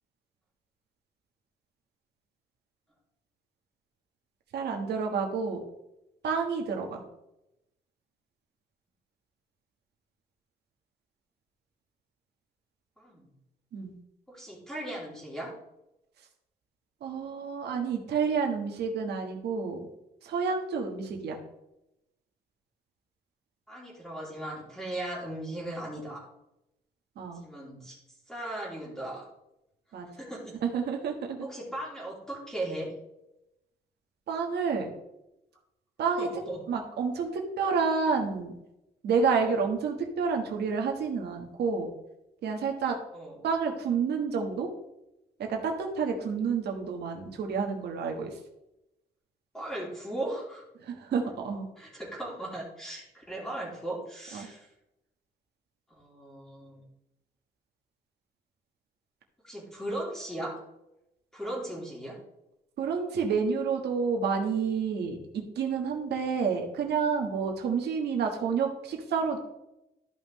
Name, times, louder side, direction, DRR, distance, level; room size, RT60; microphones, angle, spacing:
voice 1, 4.5-5.6 6.2-7.0 13.7-14.0 17.0-19.9 20.2-21.4 27.2-27.4 29.9-30.1 30.7-31.5 34.3-34.9 36.0-36.3 36.7-38.5 39.0-41.9 42.4-42.9 43.4-44.7 45.4-48.3 50.8-51.7 54.3-54.5 62.8-69.4, right 5 dB, 85° right, 2 dB, 1.4 m, -29 dB
voice 2, 13.0-13.3 14.3-15.5 23.7-26.2 27.3-28.0 28.3-29.2 30.1-30.6 31.4-32.9 36.2-36.6 39.5-39.7 43.1-43.4 49.5-50.6 51.8-54.7 56.0-56.8 59.4-60.5 61.3-62.2, right 1 dB, 5° left, -4 dB, 2.8 m, -37 dB
13.0 x 5.5 x 3.1 m, 0.88 s
wide cardioid pair, 160°, 17 cm